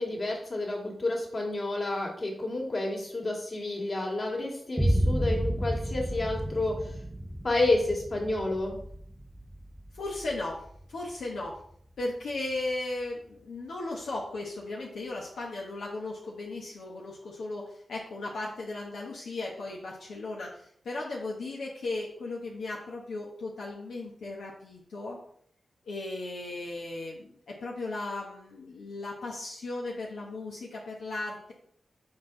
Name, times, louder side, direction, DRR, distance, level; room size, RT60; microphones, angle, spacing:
voice 1, 0.0-6.9 7.4-8.8, left 2 dB, 50° left, -1 dB, 2.2 m, -30 dB
Boom, 4.8-12.6, equal, 10° right, 0.5 m, -32 dB
voice 2, 9.9-10.6 10.9-11.6 12.0-25.2 25.9-31.5, left 2 dB, 85° left, -3 dB, 1.0 m, -36 dB
5.7 x 4.6 x 3.8 m, 0.65 s
cardioid pair, 45°, 0 cm